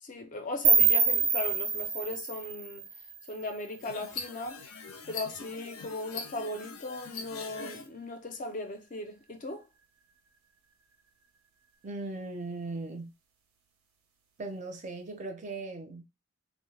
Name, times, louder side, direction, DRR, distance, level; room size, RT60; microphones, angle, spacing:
voice 1, 0.0-2.9 3.3-4.6 5.1-9.7, left 2 dB, 40° left, 0.4 m, -38 dB
sound 1, 0.6-3.6, right 5 dB, 85° right, 0.7 m, -26 dB
sound 2, 3.8-7.9, left 5 dB, 90° left, 0.6 m, -42 dB
voice 2, 11.8-13.1 14.4-16.0, right 3 dB, 35° right, 0.5 m, -38 dB
3.0 x 2.0 x 3.2 m
head